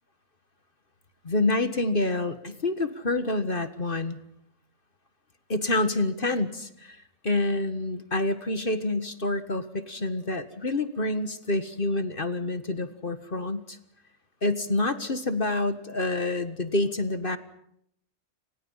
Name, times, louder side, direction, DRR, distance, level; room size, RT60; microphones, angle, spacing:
voice 1, 1.2-4.2 5.5-13.8 14.4-17.4, left 2 dB, 40° left, 11 dB, 1.7 m, -27 dB
29.5 x 27.0 x 5.7 m, 0.70 s
omnidirectional pair, 1.5 m